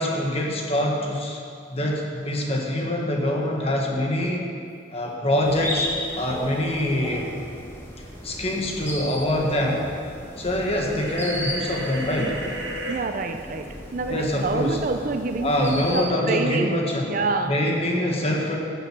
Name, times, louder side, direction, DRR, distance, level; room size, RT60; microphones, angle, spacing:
voice 1, 0.0-1.4 1.7-4.5 4.9-5.9 6.1-7.4 8.2-9.9 10.4-12.3 14.1-14.8 15.4-17.1 17.5-18.6, left 1 dB, 30° left, -1 dB, 1.5 m, -24 dB
sound 1, 5.4-16.0, left 1 dB, 10° left, 1.4 m, -35 dB
sound 2, 10.9-13.0, right 1 dB, 60° right, 1.4 m, -33 dB
voice 2, 12.9-17.6, right 3 dB, 45° right, 7 dB, 0.5 m, -27 dB
12.0 x 7.5 x 6.0 m, 2.4 s
head